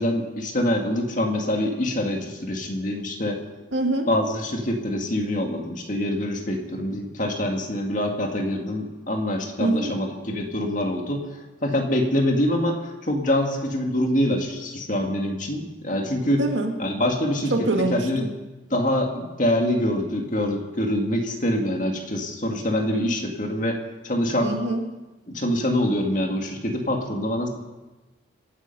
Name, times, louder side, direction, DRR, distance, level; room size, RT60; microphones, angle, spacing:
voice 1, 0.0-3.4 4.1-11.2 11.6-12.8 13.0-16.4 16.8-17.5 17.9-18.3 18.7-23.8 24.0-24.5 25.3-27.5, left 1 dB, 45° left, 2 dB, 2.1 m, -25 dB
voice 2, 3.7-4.1 9.6-9.9 16.4-16.7 17.5-18.3 24.4-24.9, right 2 dB, 85° right, 3 dB, 1.9 m, -24 dB
26.0 x 9.0 x 5.5 m, 1.2 s
head